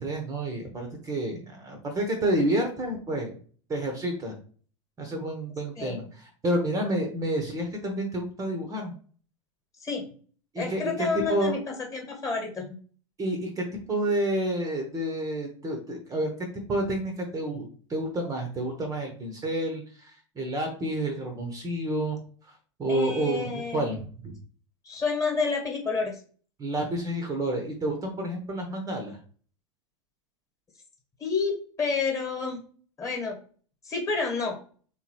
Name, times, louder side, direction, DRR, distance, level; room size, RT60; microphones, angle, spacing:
voice 1, 0.0-3.3 3.7-4.4 5.0-8.9 10.5-11.5 13.2-16.3 16.7-22.2 22.8-24.3 26.6-29.2, right 1 dB, 20° right, 3 dB, 0.8 m, -29 dB
voice 2, 10.6-11.6 11.9-12.7 22.9-23.9 24.8-26.2 31.2-32.6 33.0-33.4 33.8-34.6, left 4 dB, 20° left, 2 dB, 1.3 m, -29 dB
3.5 x 2.9 x 3.1 m, 0.43 s
figure-of-eight pair, 90°, 16 cm